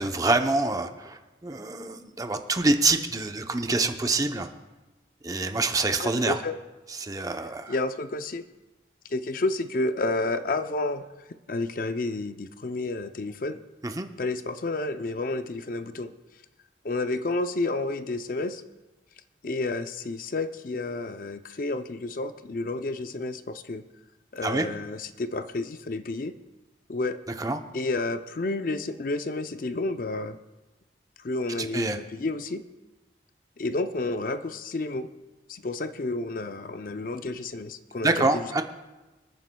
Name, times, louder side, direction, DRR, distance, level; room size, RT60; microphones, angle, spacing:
voice 1, 0.0-4.5 5.2-6.4 6.9-7.7 13.8-14.1 24.4-24.7 27.4-27.6 31.6-32.0 38.0-38.6, right 3 dB, 20° right, 6 dB, 0.7 m, -26 dB
voice 2, 6.0-6.6 7.7-8.4 9.1-11.1 11.5-13.6 14.2-16.1 16.8-18.6 19.4-23.8 24.3-26.3 26.9-27.2 27.7-30.4 31.2-32.6 33.6-35.1 35.5-38.6, left 2 dB, 50° left, 10 dB, 0.5 m, -30 dB
25.5 x 9.4 x 2.3 m, 1.1 s
head